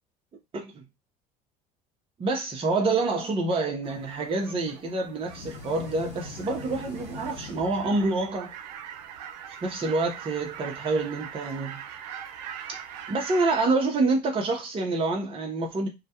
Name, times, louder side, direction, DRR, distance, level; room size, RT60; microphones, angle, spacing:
voice 1, 0.5-0.8 2.2-8.5 9.6-11.8 12.7-12.8 13.1-15.9, right 3 dB, 25° right, 0.6 m, -27 dB
sound 1, 3.8-13.6, right 9 dB, 80° right, 0.4 m, -42 dB
sound 2, 5.2-8.4, left 2 dB, 90° left, 0.7 m, -43 dB
2.2 x 2.1 x 2.7 m
hypercardioid pair, 75°, 21 cm